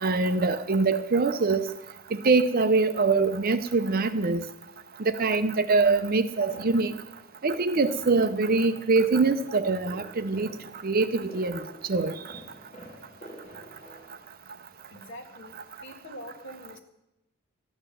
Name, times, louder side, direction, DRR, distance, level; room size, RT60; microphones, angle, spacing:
voice 1, 0.0-1.7 2.2-4.4 5.2-6.9 7.4-10.5 10.8-11.6 11.9-12.2, right 3 dB, 40° right, 0.6 m, -23 dB
voice 2, 6.3-6.7 9.4-9.8 14.9-16.8, equal, 55° left, 1.9 m, -44 dB
sound 1, 6.5-14.2, equal, 35° left, 3.8 m, -48 dB
13.5 x 9.7 x 6.9 m
head